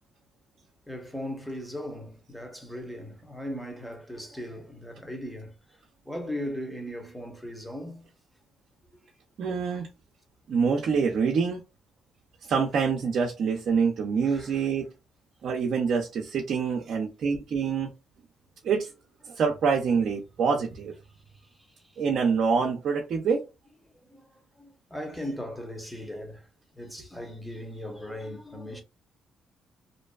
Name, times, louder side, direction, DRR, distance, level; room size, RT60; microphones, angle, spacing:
voice 1, 0.9-5.5 6.1-8.1 14.3-14.6 24.1-26.5 26.7-28.8, equal, 5° left, 0.8 m, -38 dB
voice 2, 9.4-9.9 10.5-11.6 12.4-14.9 15.4-17.9 18.6-18.9 19.2-20.9 22.0-23.4, right 5 dB, 65° right, 0.5 m, -26 dB
2.6 x 2.2 x 2.2 m
cardioid pair, 90°, 0 cm